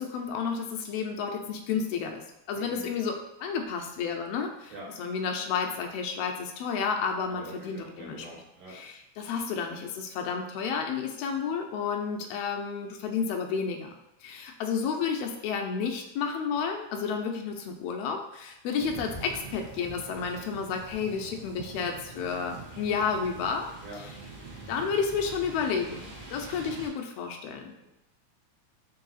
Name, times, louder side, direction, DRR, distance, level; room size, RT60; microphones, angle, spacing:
voice 1, 0.0-2.2 2.5-3.1 3.4-4.7 5.0-8.3 8.7-13.9 14.2-23.7 24.7-27.7, left 6 dB, 85° left, 3 dB, 1.4 m, -31 dB
voice 2, 2.5-2.9 4.7-4.9 7.3-8.8 23.8-24.0 27.8-27.9, right 2 dB, 60° right, -5 dB, 2.2 m, -45 dB
sound 1, 18.8-26.9, right 3 dB, 45° right, 0.6 m, -44 dB
4.7 x 2.7 x 4.0 m, 0.89 s
omnidirectional pair, 3.4 m